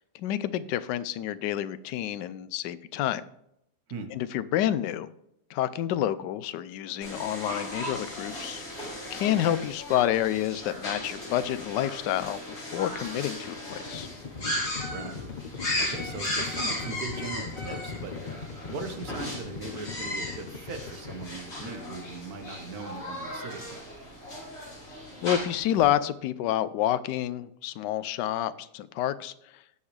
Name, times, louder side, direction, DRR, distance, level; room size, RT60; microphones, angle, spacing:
voice 1, 0.0-3.2 4.1-5.1 5.5-14.1 25.2-29.6, left 12 dB, 80° left, 14 dB, 1.2 m, -29 dB
sound 1, 7.0-25.8, left 1 dB, 50° left, 4.1 m, -36 dB
Livestock farm animals working animals, 13.4-22.1, left 5 dB, 65° left, 0.4 m, -40 dB
voice 2, 14.8-15.3 15.8-18.2 18.6-23.9, right 4 dB, 60° right, 6 dB, 1.6 m, -39 dB
16.5 x 5.6 x 3.3 m, 0.77 s
omnidirectional pair, 1.9 m